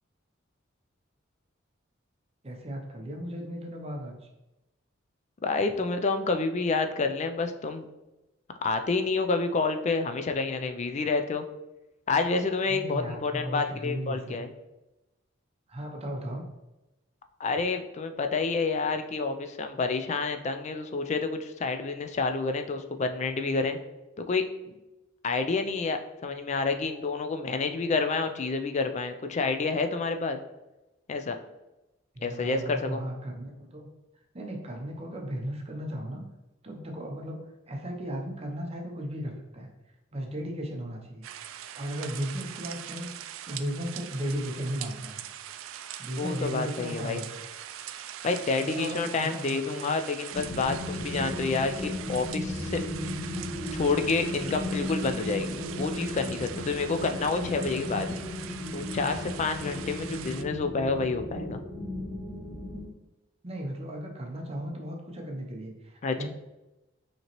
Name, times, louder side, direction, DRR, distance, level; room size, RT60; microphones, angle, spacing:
voice 1, 2.4-4.2 12.7-14.5 15.7-16.4 32.1-33.9 34.3-36.2 36.6-39.7 40.1-41.3 41.8-43.1 43.4-45.2 46.0-47.3 48.6-49.9 63.4-66.3, equal, 30° right, 1 dB, 0.6 m, -36 dB
voice 2, 5.4-7.9 8.6-11.4 12.1-14.5 17.4-23.8 24.3-24.4 25.2-30.4 31.1-31.4 32.2-33.0 46.1-47.2 48.2-52.8 53.7-58.2 58.7-61.6 66.0-66.3, left 4 dB, 35° left, 7 dB, 0.3 m, -29 dB
sound 1, 41.2-60.4, right 10 dB, 75° right, 0.3 m, -42 dB
sound 2, 50.3-62.9, left 1 dB, 10° left, 1.3 m, -35 dB
5.5 x 2.9 x 3.0 m, 0.99 s
head